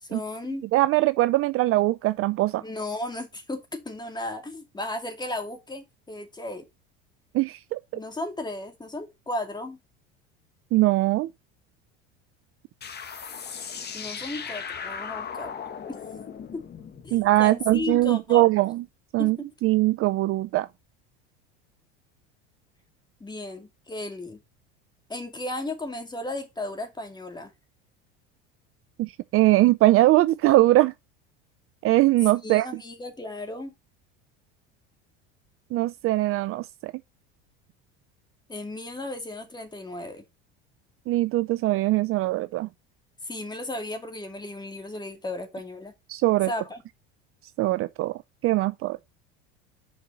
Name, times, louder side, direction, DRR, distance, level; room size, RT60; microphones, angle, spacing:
voice 1, 0.0-0.7 2.6-6.7 7.9-9.8 13.9-16.0 16.5-16.7 17.0-18.5 19.2-19.5 23.2-24.4 25.1-27.5 32.4-33.7 38.5-40.2 43.2-45.9 46.5-46.8, left 2 dB, 15° left, 2.4 m, -35 dB
voice 2, 0.7-2.6 7.3-7.8 10.7-11.3 17.1-18.8 19.1-19.4 19.6-20.7 29.0-30.9 31.8-32.7 35.7-36.9 41.1-42.7 46.1-46.5 47.6-48.1 48.4-49.0, right 17 dB, 45° right, 0.5 m, -21 dB
sound 1, 12.8-18.1, left 6 dB, 30° left, 1.4 m, -38 dB
7.1 x 5.3 x 4.6 m
supercardioid pair, 95°, 32 cm